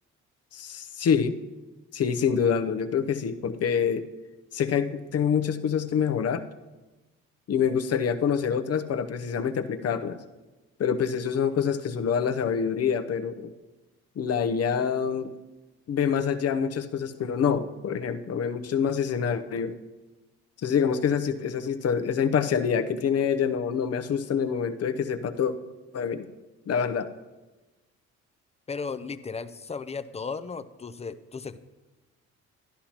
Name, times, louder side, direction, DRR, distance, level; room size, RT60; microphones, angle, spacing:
voice 1, 0.5-1.4 1.9-4.1 4.5-6.4 7.5-10.2 10.8-13.5 14.2-15.3 15.9-19.8 20.6-25.5 25.9-26.3 26.7-27.1, left 7 dB, 50° left, 10 dB, 0.8 m, -26 dB
voice 2, 28.7-31.6, left 5 dB, 20° left, 12 dB, 0.6 m, -35 dB
12.5 x 11.5 x 2.9 m, 1.2 s
supercardioid pair, 70°, 32 cm